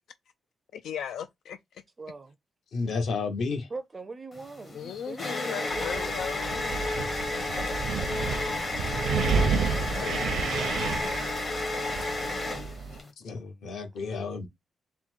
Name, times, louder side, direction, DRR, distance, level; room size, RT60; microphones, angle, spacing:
voice 1, 0.7-1.6 4.7-6.9 7.5-7.6 9.1-10.6, left 8 dB, 85° left, 0.4 m, -38 dB
voice 2, 2.0-2.3 3.7-6.2, right 3 dB, 20° right, 0.5 m, -42 dB
voice 3, 2.7-3.7 13.2-14.5, left 4 dB, 65° left, 1.1 m, -31 dB
sound 1, 4.4-13.1, left 2 dB, 35° left, 1.0 m, -32 dB
Wind, 5.7-13.0, right 6 dB, 80° right, 0.6 m, -31 dB
3.9 x 2.2 x 4.4 m
wide cardioid pair, 170°, 0 cm